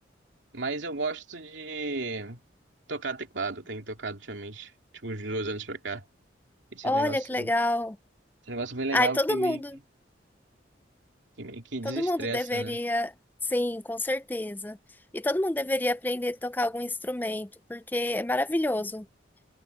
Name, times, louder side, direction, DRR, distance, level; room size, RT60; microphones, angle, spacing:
voice 1, 0.5-2.4 2.9-4.7 5.0-6.0 6.7-7.5 8.5-9.6 11.4-12.8, right 3 dB, 80° right, 2.6 m, -34 dB
voice 2, 6.8-8.0 8.9-9.8 11.8-13.1 13.5-14.8 15.1-19.0, left 1 dB, 10° left, 0.4 m, -28 dB
head